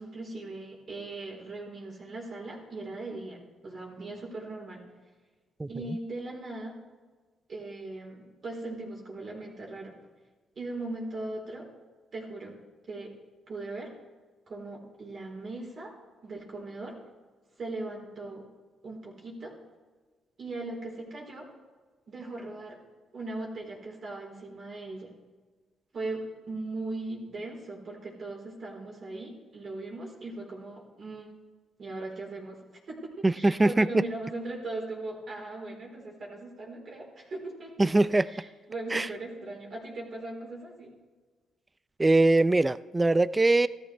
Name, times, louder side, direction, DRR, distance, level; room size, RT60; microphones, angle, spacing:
voice 1, 0.0-4.8 5.7-6.8 7.5-9.9 10.6-11.7 12.1-12.6 12.9-13.1 13.5-13.9 14.5-15.9 16.2-17.0 17.6-18.4 18.8-19.5 20.4-21.5 22.1-22.8 23.1-25.1 25.9-31.4 31.8-32.6 32.9-40.9, right 2 dB, 45° right, -2 dB, 4.0 m, -39 dB
voice 2, 33.2-33.9 37.8-38.3 38.9-39.1 42.0-43.7, right 2 dB, 15° right, 17 dB, 0.4 m, -22 dB
16.0 x 13.5 x 3.3 m, 1.3 s
cardioid pair, 90°, 0 cm